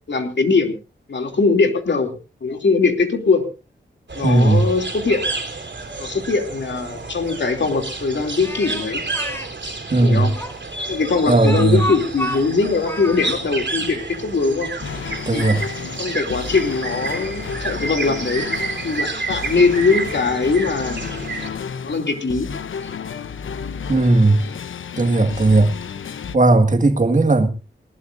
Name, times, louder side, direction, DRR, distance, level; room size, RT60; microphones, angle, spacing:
voice 1, 0.1-0.8 1.1-2.1 2.4-3.5 4.1-5.2 6.0-9.0 10.0-10.3 10.9-14.7 15.3-15.5 16.0-18.5 18.8-21.1 21.8-22.5 22.8-22.9, left 4 dB, 65° left, 2.9 m, -21 dB
sound 1, 4.1-21.5, right 3 dB, 65° right, 3.3 m, -30 dB
voice 2, 4.2-4.6 9.9-10.3 11.3-11.8 15.3-15.6 23.9-24.4 25.0-25.7 26.3-27.5, right 2 dB, 40° right, 1.9 m, -16 dB
Speech, 8.4-9.5 10.4-13.4, equal, 15° left, 2.8 m, -30 dB
sound 2, 14.8-26.4, left 6 dB, 90° left, 0.8 m, -32 dB
20.0 x 18.0 x 2.6 m
wide cardioid pair, 105°, 20 cm